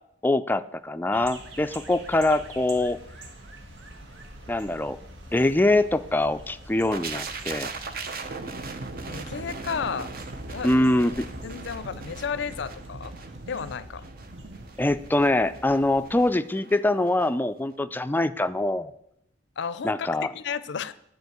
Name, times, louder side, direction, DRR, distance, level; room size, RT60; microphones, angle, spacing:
voice 1, 0.2-3.0 4.5-5.0 5.3-7.7 10.6-11.3 14.8-18.9 19.8-20.3, left 2 dB, 10° left, 11 dB, 0.4 m, -24 dB
sound 1, 1.1-16.3, right 1 dB, 80° right, 1.5 m, -46 dB
sound 2, 6.9-16.8 17.1-17.3, right 3 dB, 50° right, 0.8 m, -38 dB
voice 2, 9.1-10.1 10.5-10.9 11.4-13.1 13.5-14.0 19.6-20.0 20.2-20.9, left 6 dB, 65° left, 15 dB, 0.5 m, -32 dB
11.0 x 4.4 x 8.0 m, 0.78 s
head